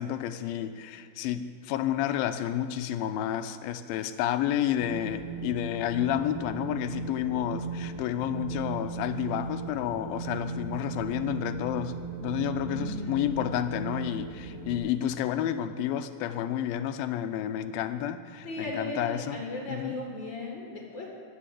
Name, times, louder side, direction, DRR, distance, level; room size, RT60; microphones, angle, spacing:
voice 1, 0.0-19.4 19.7-20.0, left 11 dB, 80° left, 9 dB, 2.2 m, -30 dB
Wind, 4.8-14.8, right 4 dB, 85° right, 2.9 m, -37 dB
voice 2, 12.7-13.2 18.4-21.1, left 2 dB, 45° left, -1 dB, 1.7 m, -37 dB
15.0 x 5.8 x 9.8 m, 2.6 s
omnidirectional pair, 4.5 m